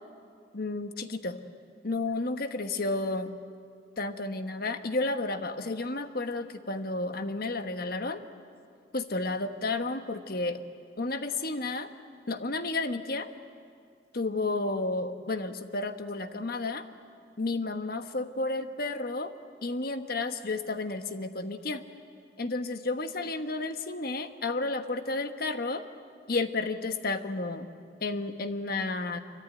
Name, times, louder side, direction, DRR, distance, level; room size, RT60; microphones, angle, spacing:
voice 1, 0.5-1.4 1.8-3.3 4.0-8.2 8.9-10.6 11.0-11.9 12.3-13.3 14.1-16.8 17.4-19.3 19.6-21.8 22.4-25.8 26.3-27.7 28.0-29.2, left 3 dB, 55° left, 8 dB, 1.3 m, -32 dB
25.5 x 24.0 x 9.6 m, 2.3 s
head